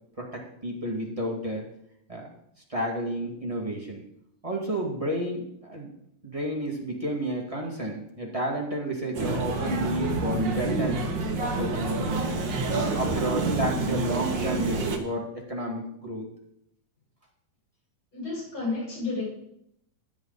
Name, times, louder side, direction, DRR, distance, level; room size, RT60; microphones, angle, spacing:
voice 1, 0.2-1.6 2.1-2.3 2.7-4.0 4.4-5.9 6.2-11.0 11.4-12.3 12.7-16.3, right 1 dB, 15° right, -2 dB, 1.3 m, -31 dB
sound 1, 9.1-15.0, right 3 dB, 65° right, 1.1 m, -28 dB
voice 2, 18.1-19.3, left 3 dB, 35° left, -5 dB, 7.2 m, -31 dB
15.0 x 9.6 x 4.1 m, 0.75 s
omnidirectional pair, 4.1 m